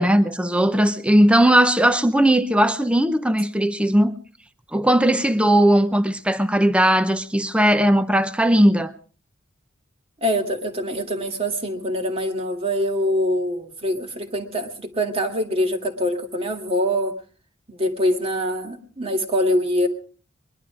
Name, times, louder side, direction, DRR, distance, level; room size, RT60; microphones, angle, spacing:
voice 1, 0.0-4.1 4.7-8.9, right 1 dB, 5° right, 0.7 m, -18 dB
voice 2, 10.2-17.1 17.7-19.9, equal, 30° right, 2.1 m, -24 dB
22.0 x 11.5 x 4.8 m
head